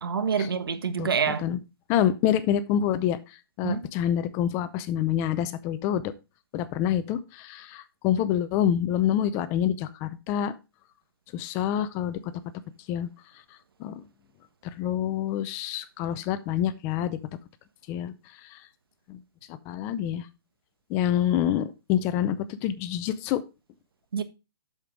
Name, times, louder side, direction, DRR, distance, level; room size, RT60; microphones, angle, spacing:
voice 1, 0.0-1.4 3.6-3.9 24.1-24.2, right 6 dB, 75° right, 1.2 m, -27 dB
voice 2, 1.0-1.6 1.9-3.2 3.6-6.1 6.5-10.5 11.3-12.3 12.9-13.1 13.8-14.0 14.8-17.2 17.9-18.1 18.5-18.6 19.1-19.2 19.7-20.2 20.9-23.4, left 10 dB, 20° left, 0.5 m, -27 dB
8.0 x 6.9 x 3.6 m
hypercardioid pair, 155°, 12 cm